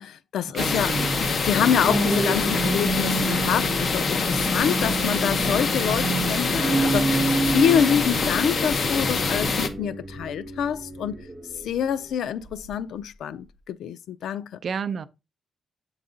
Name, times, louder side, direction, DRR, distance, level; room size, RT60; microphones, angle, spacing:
voice 1, 0.0-0.9 1.4-11.2 11.6-14.5, left 8 dB, 90° left, 0.4 m, -26 dB
voice 2, 0.5-1.3 14.6-15.1, right 6 dB, 50° right, 0.5 m, -31 dB
sound 1, 0.6-9.7, left 4 dB, 45° left, 0.8 m, -25 dB
sound 2, 1.7-11.9 12.5-12.8, right 3 dB, 10° right, 1.5 m, -29 dB
7.7 x 4.0 x 3.7 m
wide cardioid pair, 145°, 0 cm